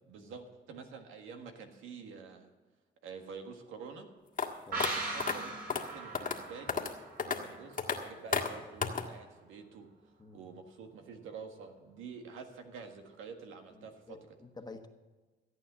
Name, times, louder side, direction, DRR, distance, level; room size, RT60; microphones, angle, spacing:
voice 1, 0.1-2.5 3.0-4.1 4.7-5.5 5.9-6.9 7.2-9.9 10.3-14.4, right 5 dB, 90° right, 4 dB, 1.7 m, -48 dB
sound 1, 4.4-4.5 4.8-4.9 5.2-5.3 5.7-5.8 6.1-6.4 6.7-6.9 7.2-7.4 7.8-8.0 8.3-8.5 8.8-9.0, left 5 dB, 40° left, 1.6 m, -31 dB
sound 2, 4.7-8.2 8.5-8.6, right 3 dB, 50° right, 4.3 m, -40 dB
voice 2, 14.1-14.9, left 3 dB, 20° left, 5 dB, 1.3 m, -49 dB
14.5 x 8.9 x 6.8 m, 1.3 s
cardioid pair, 90°, 20 cm